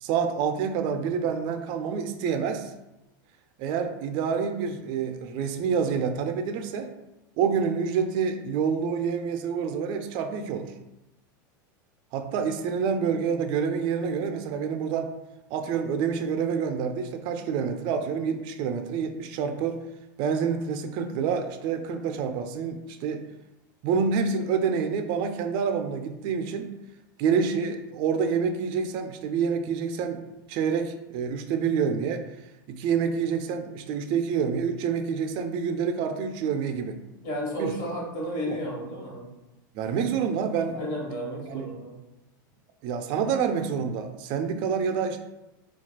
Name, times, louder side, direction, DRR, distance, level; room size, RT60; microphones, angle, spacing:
voice 1, 0.0-2.7 3.6-6.9 7.4-10.7 12.1-15.1 15.5-19.8 20.2-23.2 23.8-26.7 27.2-30.2 30.5-32.3 32.7-37.0 37.6-37.7 38.5-38.6 39.7-40.8 41.5-41.7 42.8-45.2, right 6 dB, 45° right, 6 dB, 0.3 m, -27 dB
voice 2, 37.2-39.3 40.7-41.9, equal, 55° left, -3 dB, 1.3 m, -33 dB
3.8 x 2.3 x 2.2 m, 0.98 s
supercardioid pair, 135°, 11 cm